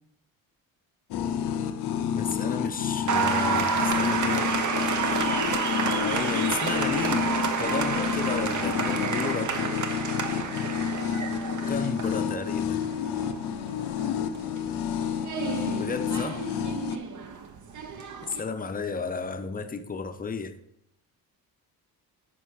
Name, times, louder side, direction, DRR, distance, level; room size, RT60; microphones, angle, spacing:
sound 1, 1.1-17.0, left 8 dB, 85° left, 0.7 m, -30 dB
voice 1, 2.1-4.5 6.0-9.6 11.7-12.8 15.8-16.4 18.3-20.5, left 5 dB, 20° left, 0.6 m, -33 dB
Applause, 3.1-18.4, right 5 dB, 50° right, 0.9 m, -30 dB
10.5 x 4.5 x 4.7 m
cardioid pair, 105°, 38 cm